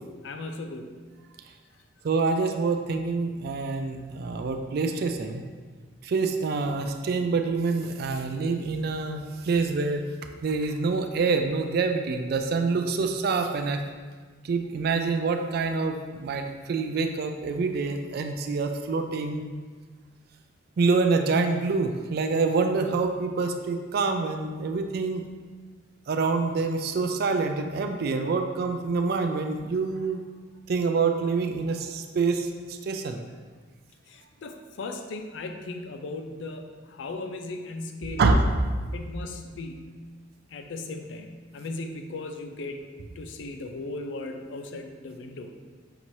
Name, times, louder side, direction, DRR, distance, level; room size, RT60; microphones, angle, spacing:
voice 1, 0.2-0.9 34.1-38.3 38.9-39.9 40.5-42.9 43.2-45.5, left 2 dB, 70° left, 5 dB, 0.4 m, -37 dB
voice 2, 2.0-5.4 6.0-10.0 10.4-13.8 14.4-19.4 20.8-25.2 26.1-30.2 30.7-33.2 38.2-38.7, right 4 dB, 55° right, 6 dB, 0.3 m, -26 dB
5.8 x 2.7 x 3.0 m, 1.5 s
head